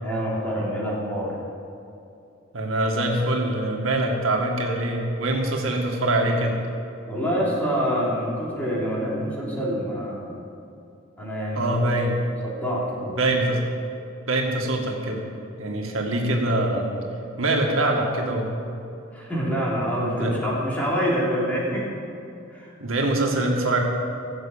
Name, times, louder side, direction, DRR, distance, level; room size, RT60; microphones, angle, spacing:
voice 1, 0.0-1.4 7.1-10.4 11.2-11.9 12.4-13.2 19.1-21.9 22.5-22.7, equal, 10° left, -6 dB, 3.4 m, -26 dB
voice 2, 2.5-6.6 11.5-12.2 13.1-13.6 14.3-15.2 15.6-16.9 17.4-18.7 20.2-20.4 22.8-23.8, right 1 dB, 90° right, 0 dB, 1.9 m, -24 dB
15.0 x 7.7 x 7.3 m, 2.6 s
head